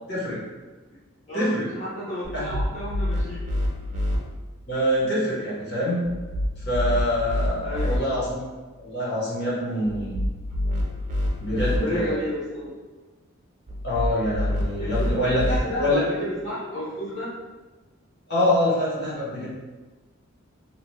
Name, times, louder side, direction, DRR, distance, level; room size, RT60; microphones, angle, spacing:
voice 1, 0.1-0.4 1.3-1.7 2.3-2.5 4.7-6.1 6.6-8.4 8.8-10.2 11.4-12.2 13.8-15.5 15.8-16.0 18.3-19.5, left 1 dB, 55° left, -7 dB, 1.2 m, -25 dB
voice 2, 1.3-3.5 7.6-8.1 11.5-12.7 14.8-17.3, left 1 dB, 35° left, -11 dB, 0.9 m, -32 dB
sound 1, 2.2-4.2 6.0-8.0 9.9-11.8 13.7-15.6, left 1 dB, 40° right, 0.6 m, -27 dB
3.0 x 2.4 x 3.1 m, 1.2 s
head